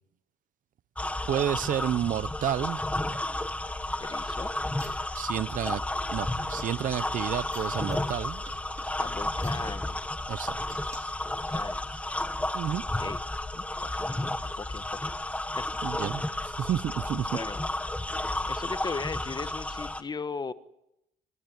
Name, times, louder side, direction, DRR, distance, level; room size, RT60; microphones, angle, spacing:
sound 1, 1.0-20.0, left 1 dB, 10° left, 1.3 m, -32 dB
voice 1, 1.3-2.8 5.1-5.8 6.1-8.4 10.3-10.6 12.5-12.8 15.8-17.3, right 10 dB, 50° right, 0.8 m, -30 dB
voice 2, 4.0-4.5 9.0-10.0 11.2-12.1 13.0-13.2 13.5-15.1 15.6-15.7 17.3-17.6 18.5-20.5, left 4 dB, 25° left, 1.2 m, -38 dB
sound 2, 4.8-7.0 7.4-9.7 10.7-11.0 11.5-11.6, right 2 dB, 15° right, 5.1 m, -52 dB
27.5 x 13.5 x 9.7 m
cardioid pair, 110°, 17 cm